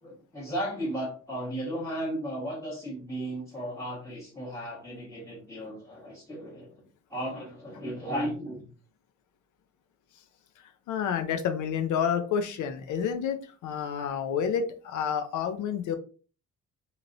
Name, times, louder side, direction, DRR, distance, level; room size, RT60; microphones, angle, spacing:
voice 1, 0.0-6.7 7.1-8.7, equal, 10° left, -5 dB, 1.4 m, -35 dB
voice 2, 10.9-16.0, left 7 dB, 80° left, 7 dB, 0.6 m, -29 dB
2.9 x 2.8 x 2.6 m, 0.38 s
cardioid pair, 90°, 30 cm